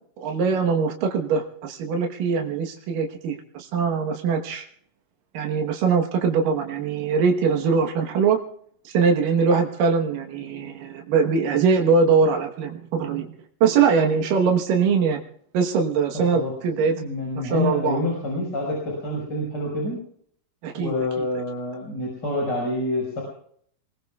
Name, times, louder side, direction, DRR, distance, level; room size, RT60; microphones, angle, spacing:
voice 1, 0.2-4.6 5.3-8.4 8.8-13.3 13.6-15.2 15.5-17.0 17.3-18.0 20.6-21.3, right 5 dB, 80° right, 2 dB, 3.0 m, -22 dB
voice 2, 16.9-20.0 20.7-23.2, left 1 dB, 30° left, -3 dB, 5.7 m, -27 dB
27.0 x 21.0 x 2.4 m, 0.63 s
omnidirectional pair, 3.8 m